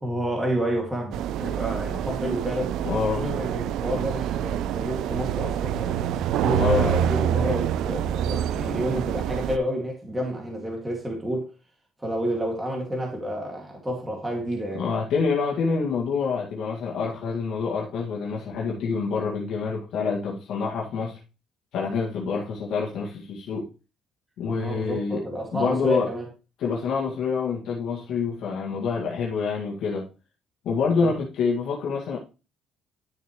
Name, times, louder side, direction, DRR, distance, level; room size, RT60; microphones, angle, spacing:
voice 1, 0.0-2.8 3.2-6.0 6.4-11.5 12.0-14.8 24.5-26.2 31.0-31.1, equal, 10° right, 2.2 m, -29 dB
sound 1, 1.1-9.6, right 10 dB, 75° right, 0.5 m, -27 dB
voice 2, 2.8-3.3 6.5-7.0 14.7-21.2 21.7-23.7 24.4-25.2 25.5-26.1 26.6-30.1 30.6-32.2, left 5 dB, 70° left, 1.9 m, -27 dB
11.0 x 6.8 x 3.1 m
cardioid pair, 135°, 0 cm